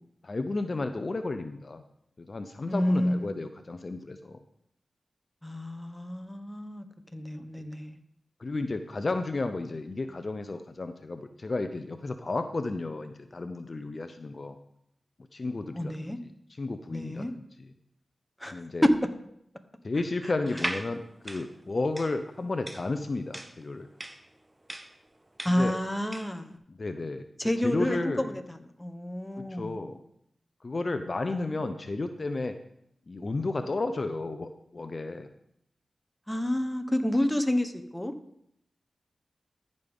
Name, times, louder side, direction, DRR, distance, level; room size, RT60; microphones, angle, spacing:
voice 1, 0.2-1.8 2.2-4.4 8.4-14.6 15.3-16.1 16.5-17.2 17.6-17.7 18.5-18.8 19.8-23.9 25.5-25.7 26.7-28.3 29.4-30.0 30.6-32.5 33.1-35.3, left 3 dB, 50° left, 8 dB, 0.6 m, -33 dB
voice 2, 2.7-3.3 5.4-6.8 7.1-8.0 15.7-16.2 16.9-17.3 18.4-18.9 25.4-26.5 27.4-29.8 31.3-31.7 36.3-38.1, left 1 dB, 10° left, 8 dB, 1.0 m, -29 dB
sound 1, 20.5-26.4, right 1 dB, 20° right, 0.6 m, -39 dB
14.0 x 5.3 x 3.6 m, 0.74 s
cardioid pair, 45°, 0 cm